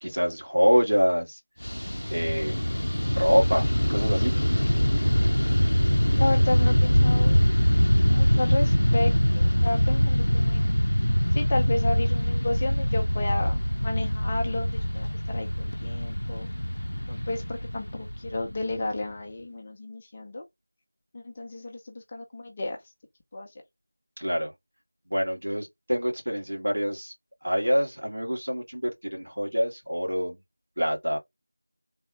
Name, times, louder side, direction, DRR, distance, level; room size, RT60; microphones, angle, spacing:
voice 1, 0.0-1.4 2.1-2.6 3.2-4.6 5.0-5.1 24.2-24.5 25.1-27.1 27.4-30.4 30.8-31.2, equal, 65° right, 2.0 m, -26 dB
Fixed-wing aircraft airplane, 1.6-19.0, equal, 80° left, 0.4 m, -23 dB
voice 2, 6.2-7.4 8.1-10.8 11.3-16.5 17.1-20.4 21.1-22.9 23.3-23.5, left 2 dB, 15° left, 0.4 m, -32 dB
3.4 x 2.9 x 2.6 m
figure-of-eight pair, 175°, 0 cm